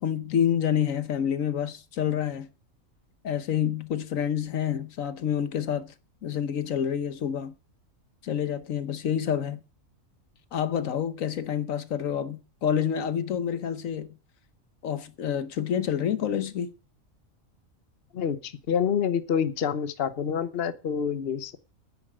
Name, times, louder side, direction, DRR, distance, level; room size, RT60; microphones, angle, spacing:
voice 1, 0.0-2.5 3.2-5.9 6.2-7.5 8.2-9.6 10.5-14.1 14.8-16.7, left 9 dB, 75° left, 1.3 m, -28 dB
voice 2, 18.1-21.6, left 7 dB, 50° left, 1.1 m, -27 dB
9.7 x 8.3 x 7.8 m
omnidirectional pair, 1.4 m